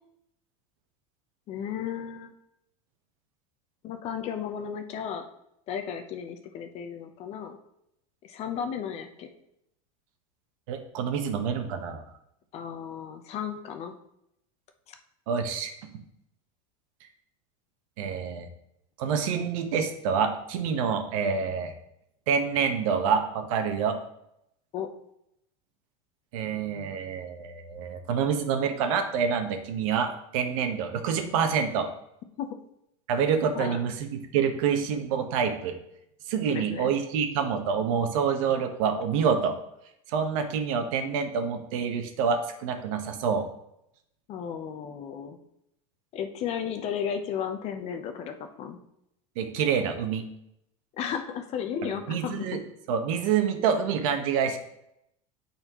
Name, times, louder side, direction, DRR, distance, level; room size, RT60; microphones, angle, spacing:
voice 1, 1.5-2.3 3.8-5.2 5.7-7.6 8.2-9.3 12.5-13.9 14.9-15.0 24.7-24.9 32.4-32.5 33.5-33.8 36.5-36.9 44.3-45.4 46.1-48.8 51.0-52.6, left 8 dB, 35° left, 6 dB, 0.8 m, -34 dB
voice 2, 10.7-12.0 15.3-15.7 18.0-18.5 19.0-21.7 22.3-24.0 26.3-31.9 33.1-35.8 36.3-39.6 40.1-43.5 49.4-50.3 51.8-52.6 52.9-54.6, right 6 dB, 70° right, 6 dB, 1.1 m, -27 dB
12.5 x 4.3 x 3.0 m, 0.79 s
supercardioid pair, 155°, 18 cm